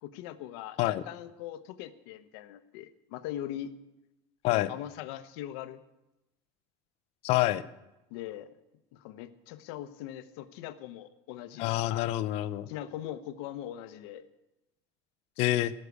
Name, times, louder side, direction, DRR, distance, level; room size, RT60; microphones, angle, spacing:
voice 1, 0.0-3.7 4.5-5.8 8.1-8.5 8.9-12.1 12.7-14.2, left 12 dB, 70° left, 11 dB, 1.0 m, -41 dB
voice 2, 7.2-7.6 11.6-12.7 15.4-15.7, left 16 dB, 50° left, 14 dB, 0.6 m, -27 dB
18.5 x 6.6 x 8.2 m, 0.96 s
cardioid pair, 175°, 14 cm